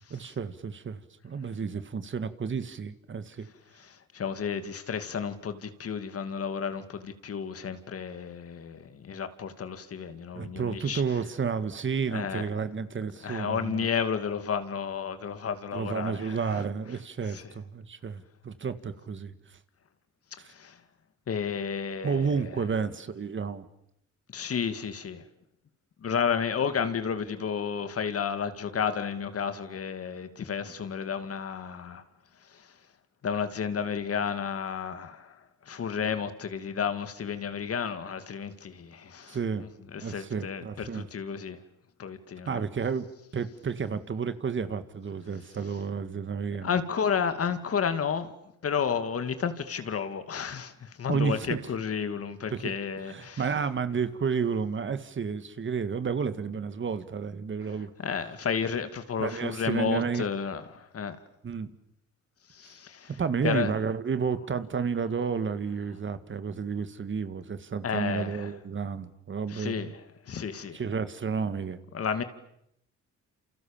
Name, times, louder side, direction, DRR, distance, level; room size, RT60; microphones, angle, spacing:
voice 1, 0.1-3.5 10.3-13.9 15.7-19.3 20.4-20.5 22.0-23.6 39.3-39.6 40.0-41.1 42.5-43.0 43.3-46.7 51.1-51.6 52.5-52.7 53.1-57.9 59.2-60.3 61.4-61.7 63.2-69.9 70.7-71.8, right 6 dB, 40° right, 1.9 m, -31 dB
voice 2, 3.8-11.0 12.1-12.4 13.2-16.6 17.3-17.4 20.5-20.8 21.3-22.5 24.3-25.3 26.0-32.0 32.4-32.7 33.2-41.6 42.0-42.6 46.6-48.3 48.6-53.5 57.6-61.2 62.5-63.1 63.4-63.7 67.8-68.5 69.5-70.0 70.3-70.8 71.9-72.2, left 6 dB, 50° left, 2.5 m, -32 dB
28.5 x 28.0 x 7.4 m
cardioid pair, 90°, 30 cm